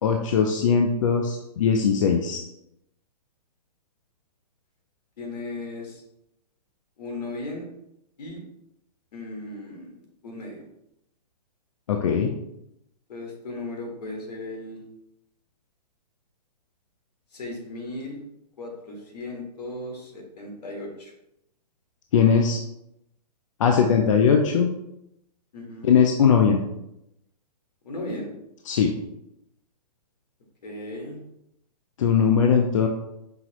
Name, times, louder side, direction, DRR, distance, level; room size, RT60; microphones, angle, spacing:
voice 1, 0.0-2.4 11.9-12.3 22.1-22.6 23.6-24.7 25.8-26.6 28.7-28.9 32.0-32.9, left 6 dB, 50° left, 2 dB, 0.4 m, -20 dB
voice 2, 5.2-6.0 7.0-7.7 8.2-8.4 9.1-9.9 10.2-10.6 13.1-14.8 17.3-18.2 18.6-21.1 25.5-25.9 27.8-28.3 30.6-31.2, left 2 dB, 70° left, 1 dB, 1.6 m, -36 dB
5.7 x 2.9 x 2.9 m, 0.84 s
hypercardioid pair, 165°, 21 cm